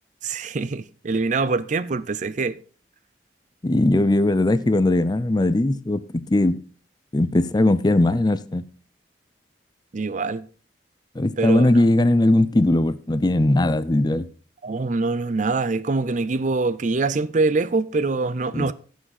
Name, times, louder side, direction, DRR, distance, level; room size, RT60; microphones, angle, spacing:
voice 1, 0.2-2.6 9.9-10.5 11.4-11.7 14.6-18.7, right 3 dB, 45° right, 0.5 m, -24 dB
voice 2, 3.6-6.6 7.1-8.6 11.2-14.3 18.5-18.7, left 1 dB, 25° left, 0.5 m, -19 dB
16.0 x 6.2 x 4.1 m
head